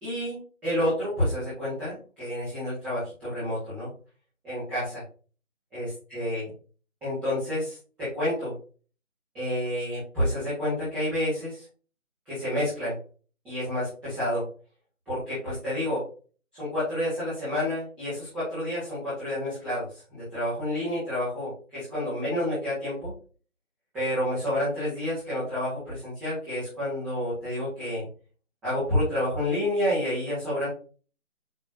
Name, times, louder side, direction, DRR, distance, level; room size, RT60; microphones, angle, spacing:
voice 1, 0.0-3.9 4.4-5.0 5.7-6.5 7.0-8.5 9.3-11.6 12.3-13.0 13.4-14.4 15.1-16.0 16.5-23.1 23.9-28.0 28.6-30.7, left 1 dB, 5° right, -14 dB, 1.8 m, -29 dB
9.1 x 3.9 x 2.9 m, 0.38 s
figure-of-eight pair, 160°, 41 cm